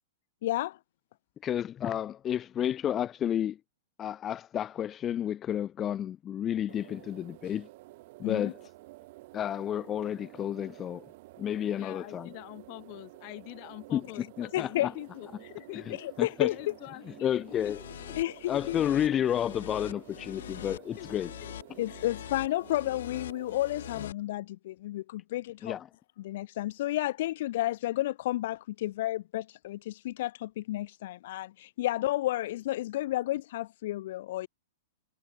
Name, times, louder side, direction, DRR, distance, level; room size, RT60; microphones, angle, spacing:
voice 1, 0.4-0.8 8.2-8.5 14.5-14.9 16.2-16.6 18.2-18.8 21.8-25.7 26.2-34.5, left 15 dB, 55° left, 0.7 m, -31 dB
voice 2, 1.4-3.6 4.0-7.7 8.2-8.6 9.3-11.1 11.4-12.3 13.9-14.0 14.4-14.9 16.2-16.5 17.2-17.8 18.5-21.3 25.6-25.9, left 10 dB, 20° left, 0.5 m, -31 dB
sound 1, 6.7-24.1, right 20 dB, 45° right, 3.6 m, -51 dB
voice 3, 11.7-18.2 20.2-20.3 21.0-21.5 21.9-22.1 22.6-22.7, left 40 dB or more, 40° left, 1.5 m, -45 dB
sound 2, 17.5-24.1, left 10 dB, 70° left, 3.5 m, -44 dB
hypercardioid pair, 155°, 0 cm